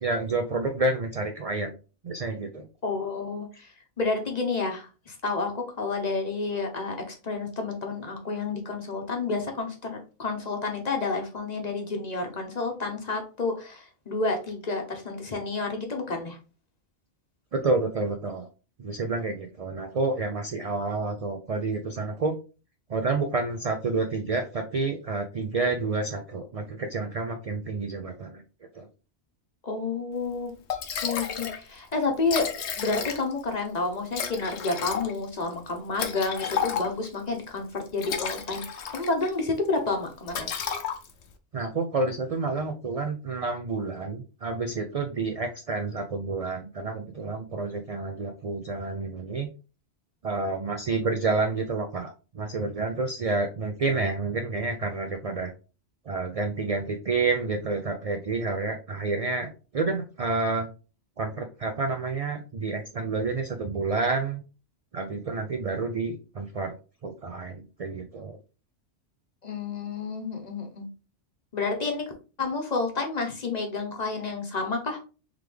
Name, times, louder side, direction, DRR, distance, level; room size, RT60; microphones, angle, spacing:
voice 1, 0.0-1.7 2.0-2.7 17.5-18.5 18.8-22.3 22.9-28.4 28.7-28.9 41.5-49.5 50.2-55.5 56.1-60.7 61.2-64.4 64.9-66.7 67.0-68.4, right 3 dB, 60° right, 5 dB, 0.3 m, -29 dB
voice 2, 2.8-16.4 29.6-30.5 31.0-32.5 32.7-40.5 69.4-70.9 71.5-72.1 72.4-75.0, left 3 dB, 40° left, 3 dB, 0.9 m, -30 dB
Liquid, 30.3-30.4 30.7-31.6 31.9-32.0 32.2-33.5 34.1-37.2 37.8-39.3 39.7-39.9 40.3-41.3, left 7 dB, 70° left, 0.9 m, -32 dB
3.7 x 3.2 x 3.3 m, 0.34 s
omnidirectional pair, 1.2 m